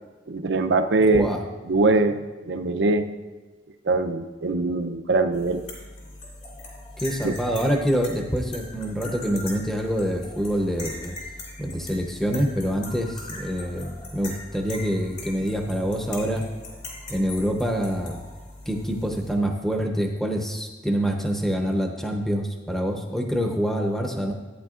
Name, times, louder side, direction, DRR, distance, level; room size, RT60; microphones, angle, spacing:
voice 1, 0.3-1.3 1.7-3.1 3.9-5.6 7.2-7.3, right 3 dB, 80° right, 8 dB, 0.6 m, -22 dB
sound 1, 5.3-19.3, left 2 dB, 45° left, 2.8 m, -40 dB
voice 2, 7.0-11.2 11.6-16.5 17.1-18.2 18.7-24.3, equal, ahead, 2 dB, 0.7 m, -26 dB
13.5 x 9.1 x 2.5 m, 1.2 s
head